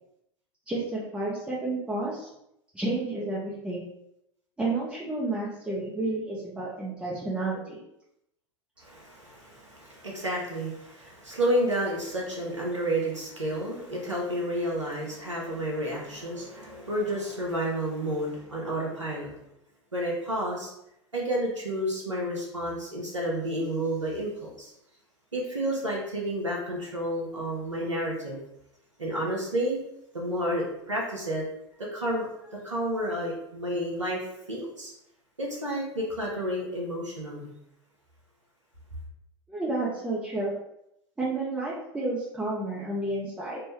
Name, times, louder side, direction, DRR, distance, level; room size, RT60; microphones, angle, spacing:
voice 1, 0.7-2.3 2.7-3.8 4.6-7.8 39.5-40.6 41.2-43.6, right 2 dB, 5° right, -7 dB, 0.6 m, -31 dB
voice 2, 8.8-19.3 19.9-20.7 21.1-24.7 25.3-28.4 29.0-29.8 30.1-31.4 31.8-34.9 35.4-37.5, right 1 dB, 85° right, -3 dB, 0.8 m, -30 dB
3.3 x 2.1 x 3.1 m, 0.80 s
figure-of-eight pair, 85°, 15 cm